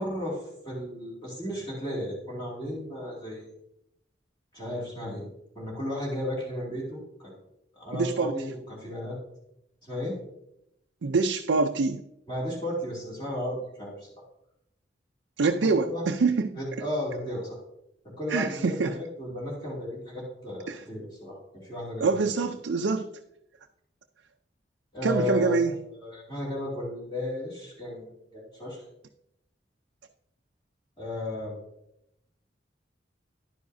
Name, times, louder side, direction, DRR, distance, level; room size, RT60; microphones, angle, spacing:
voice 1, 0.0-3.5 4.5-5.3 5.5-7.3 7.7-9.2 9.8-10.2 12.3-14.1 15.6-16.0 16.6-17.6 18.2-22.3 24.9-28.8 31.0-31.6, left 1 dB, 25° left, -5 dB, 2.6 m, -34 dB
voice 2, 7.9-8.3 11.0-12.0 15.4-16.6 18.3-19.0 20.7-20.8 22.0-23.1 25.0-25.7, right 4 dB, 80° right, 4 dB, 0.5 m, -25 dB
11.0 x 9.6 x 2.7 m, 0.80 s
head